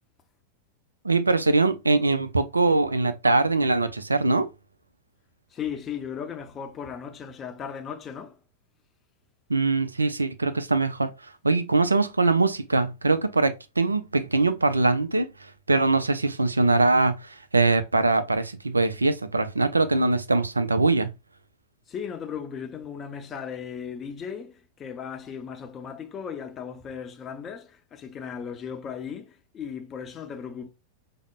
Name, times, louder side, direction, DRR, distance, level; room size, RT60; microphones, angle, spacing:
voice 1, 1.0-4.5 9.5-11.1 11.4-15.3 15.7-21.1, right 3 dB, 80° right, 0.3 m, -22 dB
voice 2, 5.5-8.4 21.9-30.7, left 7 dB, 25° left, 0.6 m, -36 dB
4.9 x 2.0 x 2.3 m
figure-of-eight pair, 90°, 0 cm